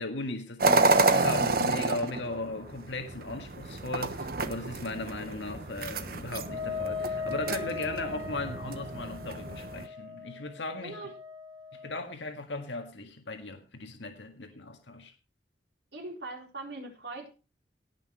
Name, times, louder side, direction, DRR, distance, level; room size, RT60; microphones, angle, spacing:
voice 1, 0.0-11.0 11.8-15.1, left 2 dB, 85° left, 1.8 m, -37 dB
sound 1, 0.6-9.9, right 3 dB, 55° right, 1.1 m, -29 dB
Wind instrument woodwind instrument, 6.4-12.1, left 5 dB, 25° right, 2.3 m, -39 dB
voice 2, 15.9-17.3, right 2 dB, 70° right, 4.3 m, -40 dB
17.5 x 6.2 x 4.6 m
head